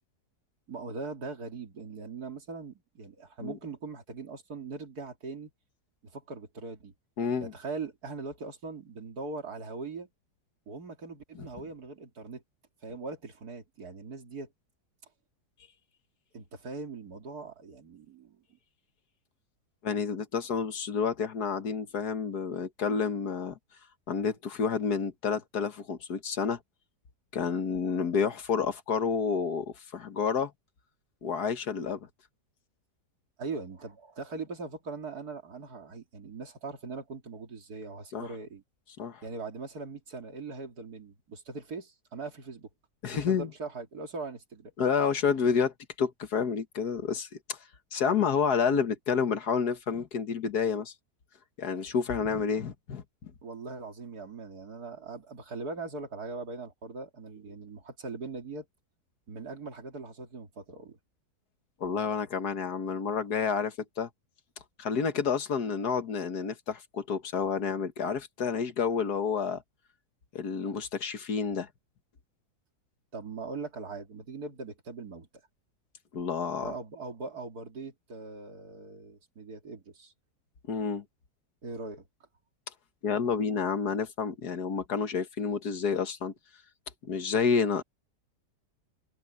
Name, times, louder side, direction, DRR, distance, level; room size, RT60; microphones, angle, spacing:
voice 1, 0.7-5.5 6.0-6.9 7.4-10.1 10.7-12.4 12.8-14.5 16.3-18.4 33.4-38.6 39.2-42.7 43.1-44.7 53.4-58.7 59.3-61.0 73.1-75.3 76.6-80.1 81.6-82.1, right 3 dB, 65° right, 3.0 m, -41 dB
voice 2, 7.2-7.5 11.4-11.5 19.8-23.6 24.1-26.6 27.3-30.5 31.2-32.1 38.1-38.3 39.0-39.2 43.0-43.5 44.8-47.6 47.9-50.9 51.6-53.3 61.8-64.1 64.8-69.6 70.3-71.7 76.1-76.7 80.7-81.0 83.0-86.3 87.0-87.8, left 6 dB, 70° left, 2.0 m, -29 dB
omnidirectional pair, 1.8 m